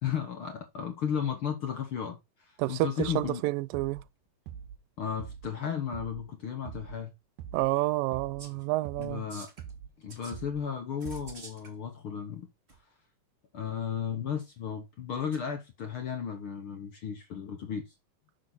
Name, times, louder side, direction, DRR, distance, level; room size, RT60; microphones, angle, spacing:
voice 1, 0.0-2.2 2.7-3.4 5.0-7.1 9.0-9.5 10.0-12.5 13.5-17.9, left 8 dB, 60° left, 1.5 m, -34 dB
voice 2, 2.6-4.0 7.5-9.2, right 19 dB, 90° right, 2.3 m, -29 dB
sound 1, 3.0-3.4 3.7-4.1 4.5-4.8 5.2-5.6 5.9-6.3 6.7-7.0 7.4-7.8 8.1-8.5 8.8-9.2 9.6-10.0 10.3-10.7 11.0-11.5, right 8 dB, 65° right, 2.3 m, -44 dB
sound 2, 8.4-8.7 9.0-9.7 10.1-10.4 11.0-11.7 12.7-12.8 15.3-15.4, right 3 dB, 40° right, 0.9 m, -49 dB
6.5 x 6.1 x 4.0 m
omnidirectional pair, 3.9 m